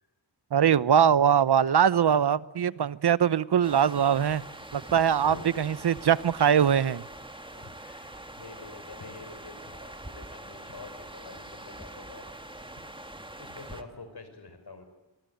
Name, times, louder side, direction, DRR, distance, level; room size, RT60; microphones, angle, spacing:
voice 1, 0.5-4.4 4.7-7.0, right 8 dB, 65° right, 0.9 m, -22 dB
sound 1, 3.6-13.8, right 1 dB, 10° right, 1.9 m, -44 dB
voice 2, 7.5-12.3 12.8-12.9 13.4-14.9, left 4 dB, 60° left, 5.6 m, -46 dB
26.5 x 22.5 x 9.2 m
wide cardioid pair, 100°, 43 cm